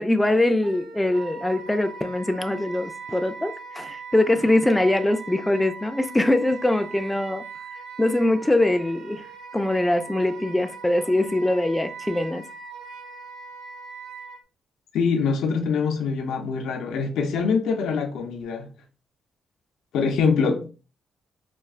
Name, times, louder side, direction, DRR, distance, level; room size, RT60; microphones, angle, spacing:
voice 1, 0.0-7.5 8.0-9.2 9.5-12.4, left 1 dB, 10° left, 0.3 m, -22 dB
Wind instrument woodwind instrument, 0.6-14.4, right 5 dB, 75° right, 1.0 m, -40 dB
voice 2, 14.9-18.7 19.9-20.6, left 5 dB, 80° left, 0.6 m, -24 dB
4.4 x 2.3 x 2.3 m
cardioid pair, 85°, 0 cm